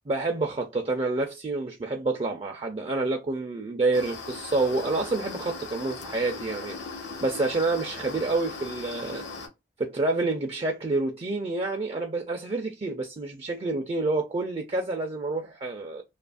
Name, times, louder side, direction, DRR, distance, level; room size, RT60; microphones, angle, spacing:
voice 1, 0.1-6.8 7.2-9.2 9.8-16.0, right 3 dB, 30° right, 0.4 m, -28 dB
sound 1, 3.9-9.5, left 4 dB, 75° left, 1.0 m, -39 dB
2.7 x 2.5 x 2.2 m
head